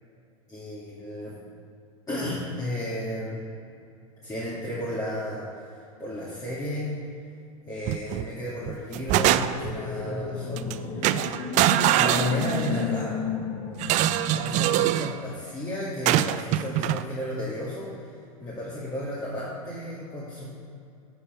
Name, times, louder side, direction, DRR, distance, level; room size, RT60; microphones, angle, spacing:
voice 1, 0.5-1.3 2.1-3.4 4.2-5.6 6.0-7.0 7.7-11.3 11.9-13.2 14.3-18.1 18.4-20.5, left 1 dB, 20° left, -8 dB, 2.2 m, -33 dB
sound 1, 7.9-8.3 8.7-9.8 10.6-10.7 11.0-12.9 13.8-15.1 16.1-17.0, right 13 dB, 45° right, 0.4 m, -24 dB
sound 2, 8.9-15.0, left 6 dB, 45° left, 1.2 m, -34 dB
7.3 x 7.0 x 5.7 m, 2.5 s
hypercardioid pair, 100°, 18 cm